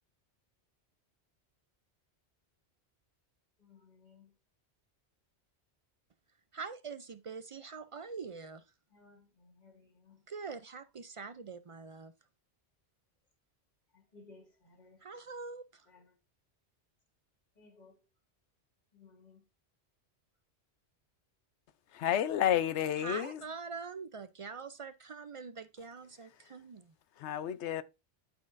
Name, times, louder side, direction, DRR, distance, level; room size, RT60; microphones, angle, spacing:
voice 1, 3.6-4.3 8.9-10.2 13.9-15.1 15.9-16.2 17.6-18.1 18.9-19.5, left 3 dB, 40° left, 2.0 m, -60 dB
voice 2, 6.5-8.6 10.3-12.1 15.0-15.9 23.0-26.9, right 5 dB, 55° right, 0.3 m, -44 dB
voice 3, 21.9-23.4 26.2-26.6 27.1-27.8, left 10 dB, 90° left, 0.9 m, -32 dB
12.0 x 4.4 x 2.5 m
omnidirectional pair, 1.1 m